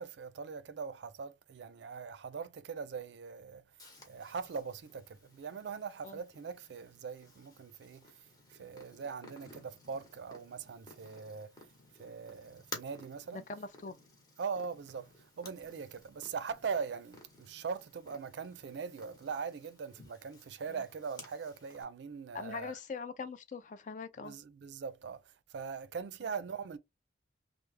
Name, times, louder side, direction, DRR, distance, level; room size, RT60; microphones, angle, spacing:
voice 1, 0.0-3.6 4.1-8.1 8.5-11.5 12.0-13.4 14.4-22.7 24.2-25.2 25.5-26.8, right 5 dB, 65° right, 0.4 m, -41 dB
Purr, 3.8-21.8, left 2 dB, 20° left, 0.9 m, -55 dB
voice 2, 13.3-14.0 20.7-20.8 22.3-24.4, left 5 dB, 40° left, 0.4 m, -42 dB
3.2 x 2.0 x 3.2 m
head